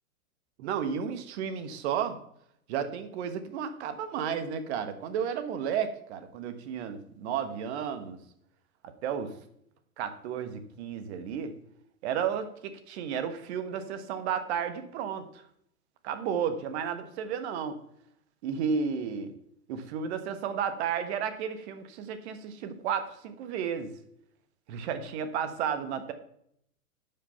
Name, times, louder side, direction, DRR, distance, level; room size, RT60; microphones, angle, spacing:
voice 1, 0.6-2.2 2.7-8.2 8.8-9.3 10.0-11.5 12.0-15.2 16.0-17.8 18.4-19.3 19.7-23.9 24.7-26.1, right 7 dB, 45° right, 9 dB, 1.5 m, -32 dB
11.0 x 5.5 x 5.8 m, 0.71 s
figure-of-eight pair, 110°, 45 cm